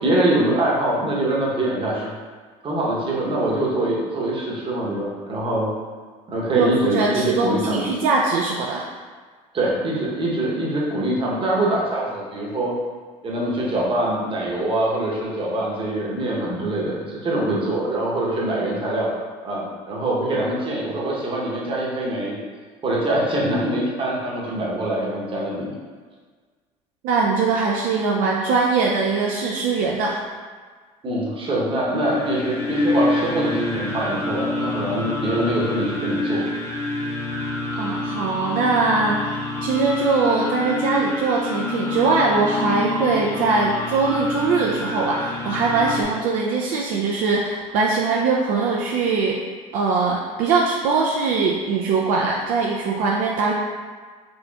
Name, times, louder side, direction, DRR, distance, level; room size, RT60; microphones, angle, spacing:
voice 1, 0.0-2.1 2.6-5.7 6.3-7.9 9.5-12.7 13.2-19.1 19.4-22.4 22.8-25.7 31.0-36.5, right 1 dB, 35° right, -4 dB, 0.9 m, -24 dB
voice 2, 6.5-8.9 27.0-30.2 37.8-49.4 49.7-53.5, right 4 dB, 65° right, -2 dB, 0.4 m, -21 dB
sound 1, 31.8-46.0, left 2 dB, 15° left, 0.5 m, -27 dB
4.1 x 2.7 x 2.3 m, 1.5 s
supercardioid pair, 105°, 15 cm